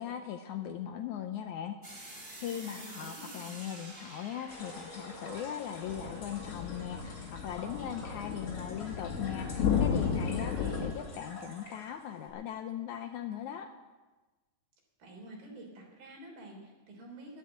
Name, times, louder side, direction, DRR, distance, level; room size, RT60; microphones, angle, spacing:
voice 1, 0.0-1.8 2.4-13.7, left 10 dB, 80° left, 5 dB, 1.8 m, -39 dB
sound 1, 1.8-6.7, right 1 dB, 20° right, 1.7 m, -49 dB
voice 2, 2.5-3.6 10.3-10.9 15.0-17.4, right 2 dB, 85° right, 0 dB, 5.2 m, -49 dB
sound 2, 4.5-12.3, left 1 dB, 35° left, 3.7 m, -47 dB
sound 3, 5.9-10.9, left 7 dB, 60° left, 2.4 m, -33 dB
11.5 x 10.5 x 8.9 m, 1.2 s
omnidirectional pair, 4.0 m